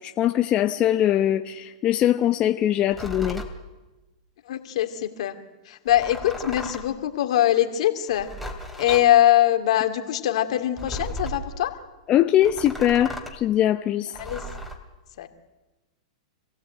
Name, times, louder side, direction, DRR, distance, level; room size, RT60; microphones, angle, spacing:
voice 1, 0.0-3.4 12.1-14.1, left 12 dB, 30° left, 7 dB, 0.9 m, -22 dB
sound 1, 2.9-3.5 5.9-6.9 8.1-9.1 10.8-11.5 12.4-13.4 14.1-14.8, equal, 5° right, 3.0 m, -35 dB
voice 2, 4.5-5.4 5.7-8.3 8.8-11.7 14.2-14.4 15.2-15.3, left 12 dB, 65° left, 7 dB, 2.5 m, -22 dB
26.5 x 16.5 x 9.0 m, 1.1 s
hypercardioid pair, 130°, 4 cm